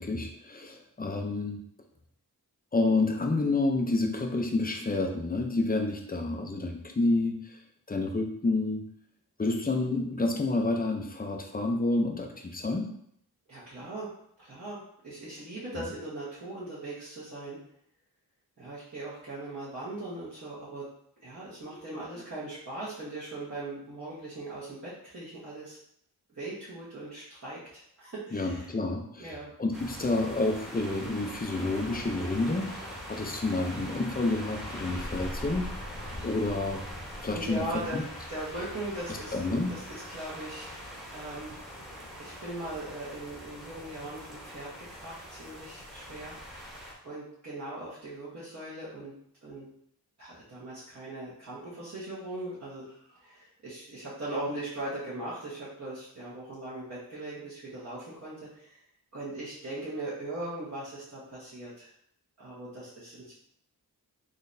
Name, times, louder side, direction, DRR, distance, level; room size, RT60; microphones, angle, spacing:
voice 1, 0.0-1.6 2.7-7.6 7.9-8.8 9.4-12.9 28.3-36.0 36.2-36.8 37.2-37.6 37.9-38.0 39.3-39.7, left 2 dB, 25° left, 4 dB, 0.5 m, -29 dB
voice 2, 13.5-14.1 14.4-17.6 18.6-20.8 21.2-25.8 26.3-28.7 29.2-29.5 37.3-38.0 38.3-39.4 39.7-40.7 41.1-41.8 42.2-46.8 47.0-49.1 49.4-49.7 50.2-58.8 59.1-61.9 62.4-63.3, right 2 dB, 45° right, -10 dB, 1.2 m, -40 dB
sound 1, 29.7-46.9, equal, ahead, 1.0 m, -42 dB
3.9 x 3.2 x 2.6 m, 0.70 s
wide cardioid pair, 80°, 39 cm